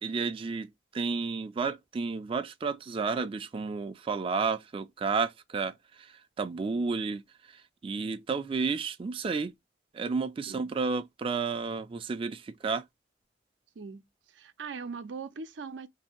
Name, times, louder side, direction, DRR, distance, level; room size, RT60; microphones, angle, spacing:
voice 1, 0.0-9.5 9.9-12.8, right 4 dB, 30° right, 0.3 m, -32 dB
voice 2, 13.8-15.9, right 5 dB, 85° right, 0.5 m, -41 dB
2.7 x 2.7 x 4.2 m
head